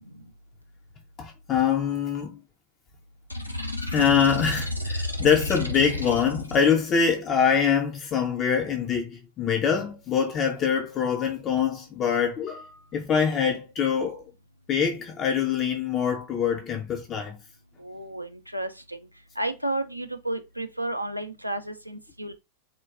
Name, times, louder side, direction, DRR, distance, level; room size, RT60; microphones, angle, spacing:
voice 1, 1.2-2.4 3.9-14.2 14.7-17.4, left 7 dB, 30° left, 0.4 m, -24 dB
sound 1, 3.3-6.7, left 1 dB, 85° left, 0.5 m, -31 dB
voice 2, 17.8-19.0 19.4-22.3, right 1 dB, 90° right, 0.3 m, -32 dB
3.6 x 2.2 x 2.4 m
figure-of-eight pair, 90°, 0 cm